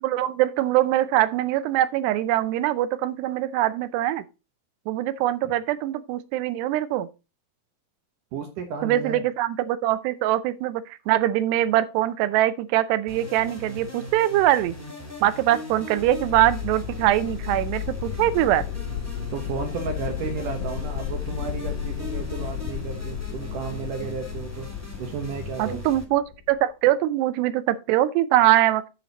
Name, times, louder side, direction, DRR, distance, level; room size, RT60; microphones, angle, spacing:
voice 1, 0.0-4.2 4.9-7.1 8.8-14.7 15.2-18.6 25.6-28.9, right 14 dB, 85° right, 2.8 m, -23 dB
voice 2, 8.3-9.2 19.3-24.7 25.0-25.9, right 6 dB, 65° right, 2.4 m, -33 dB
sound 1, 13.1-26.0, equal, 10° right, 0.6 m, -39 dB
sound 2, 16.0-26.6, left 11 dB, 85° left, 1.8 m, -33 dB
7.9 x 7.5 x 4.0 m
omnidirectional pair, 4.8 m